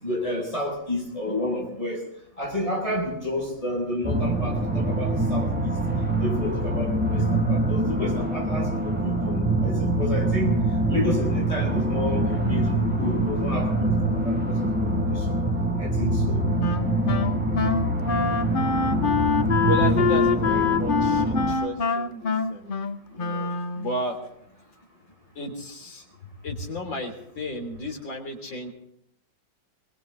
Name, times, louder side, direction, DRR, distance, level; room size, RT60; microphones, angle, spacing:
voice 1, 0.0-2.0 2.4-5.7 6.2-10.5 10.9-14.7 15.0-15.3 15.8-16.4, left 1 dB, 15° left, -1 dB, 7.5 m, -30 dB
sound 1, 4.0-21.5, right 1 dB, 5° right, 2.2 m, -24 dB
Wind instrument woodwind instrument, 16.6-24.0, left 5 dB, 55° left, 0.5 m, -25 dB
voice 2, 19.6-22.7 23.1-24.2 25.4-26.0 26.4-28.7, left 1 dB, 85° left, 2 dB, 4.2 m, -33 dB
23.5 x 22.0 x 2.8 m, 0.71 s
omnidirectional pair, 2.0 m